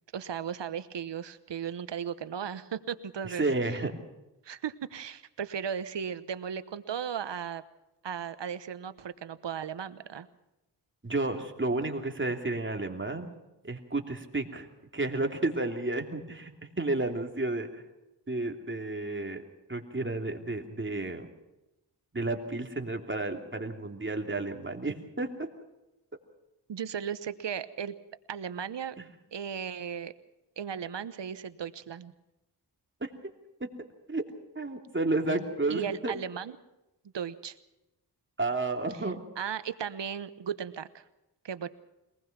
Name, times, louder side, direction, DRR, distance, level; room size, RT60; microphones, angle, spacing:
voice 1, 0.1-3.4 4.4-7.6 8.0-10.3 26.7-28.0 28.3-28.9 29.3-30.1 30.6-32.1 35.7-36.5 37.1-37.6 39.4-41.0 41.4-41.7, right 8 dB, 85° right, 14 dB, 1.1 m, -36 dB
voice 2, 3.2-3.9 11.0-13.3 13.6-14.7 14.9-16.5 16.8-17.8 18.3-19.4 19.7-21.3 22.1-25.5 34.1-34.2 34.5-36.1 38.4-39.2, right 2 dB, 30° right, 4 dB, 2.9 m, -31 dB
23.5 x 19.5 x 6.0 m, 0.94 s
cardioid pair, 60°, 42 cm